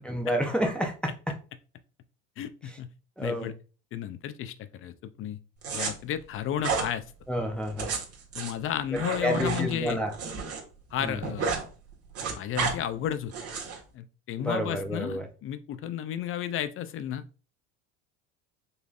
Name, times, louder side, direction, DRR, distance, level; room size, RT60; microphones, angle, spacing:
voice 1, 0.0-1.4 3.2-3.5 7.3-7.9 8.9-10.1 11.0-11.3 14.4-15.3, equal, 5° left, 2 dB, 0.7 m, -30 dB
voice 2, 2.4-2.9 3.2-3.5 3.9-5.4 5.7-7.0 8.3-10.0 10.9-11.5 12.4-13.3 13.9-17.2, left 10 dB, 40° left, 12 dB, 0.5 m, -33 dB
sound 1, 5.6-5.9 6.6-6.9 7.6-10.6 10.9-11.6 11.9-12.7 13.3-13.8, right 5 dB, 45° right, 1.5 m, -31 dB
5.3 x 3.2 x 2.5 m, 0.36 s
supercardioid pair, 95°, 34 cm